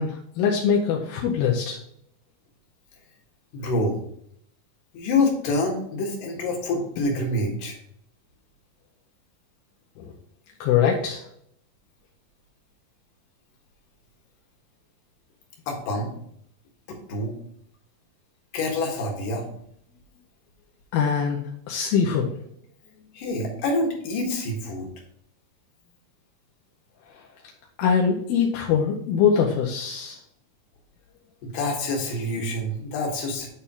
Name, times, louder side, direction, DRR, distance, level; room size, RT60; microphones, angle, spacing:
voice 1, 0.0-1.8 10.0-10.1 10.6-11.2 20.9-21.4 21.7-22.3 27.8-30.2, left 7 dB, 85° left, -1 dB, 2.6 m, -22 dB
voice 2, 3.5-4.0 4.9-7.8 15.7-16.1 16.9-17.3 18.5-19.5 23.1-24.9 31.4-33.5, left 2 dB, 65° left, 0 dB, 3.0 m, -26 dB
8.5 x 4.5 x 3.6 m, 0.69 s
omnidirectional pair, 4.2 m